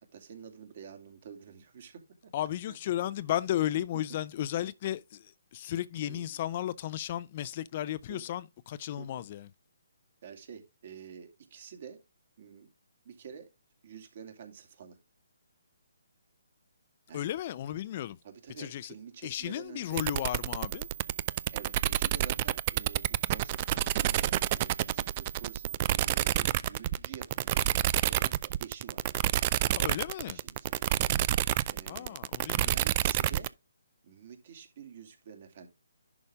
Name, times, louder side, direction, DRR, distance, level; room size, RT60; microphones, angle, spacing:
voice 1, 0.1-2.3 2.7-2.8 6.1-6.4 8.1-8.3 9.0-9.2 10.2-12.0 12.4-12.7 13.0-13.5 13.8-15.0 17.1-17.3 18.2-20.1 21.5-27.6 28.1-28.3 28.6-29.0 30.2-31.2 31.7-32.2 32.6-33.5 34.0-35.7, right 7 dB, 50° right, 2.5 m, -48 dB
voice 2, 2.3-9.5 17.1-18.2 18.6-18.9 19.2-20.9 29.7-30.4 31.9-32.8, left 12 dB, 40° left, 0.6 m, -34 dB
sound 1, 19.9-33.5, right 14 dB, 35° right, 0.4 m, -29 dB
11.0 x 5.3 x 3.5 m
figure-of-eight pair, 140°, 0 cm